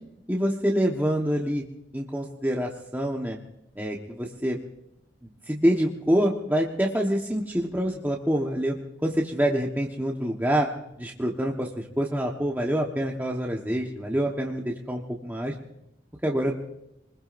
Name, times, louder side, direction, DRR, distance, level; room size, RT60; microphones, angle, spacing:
voice 1, 0.3-1.6 1.9-3.4 3.8-4.6 5.5-8.8 9.0-10.7 11.0-15.5 16.2-16.6, equal, 10° right, -1 dB, 1.2 m, -26 dB
25.5 x 21.0 x 2.6 m, 0.84 s
head